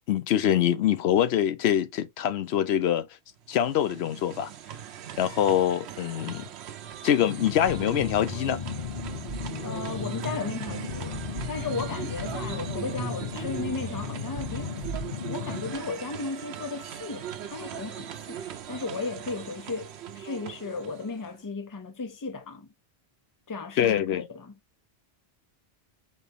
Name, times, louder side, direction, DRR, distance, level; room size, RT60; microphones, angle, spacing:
voice 1, 0.1-3.1 3.5-4.5 5.2-6.5 7.0-8.6 23.8-24.2, left 10 dB, 90° left, 0.9 m, -24 dB
sound 1, 3.4-21.4, right 10 dB, 85° right, 0.9 m, -40 dB
sound 2, 7.2-15.8, left 8 dB, 55° left, 0.7 m, -37 dB
sound 3, 7.7-15.1, right 2 dB, 55° right, 1.2 m, -39 dB
voice 2, 9.6-11.2 11.5-14.9 15.2-18.4 18.7-22.7 23.5-24.6, left 4 dB, 25° left, 0.6 m, -35 dB
4.4 x 3.4 x 3.4 m
omnidirectional pair, 1.1 m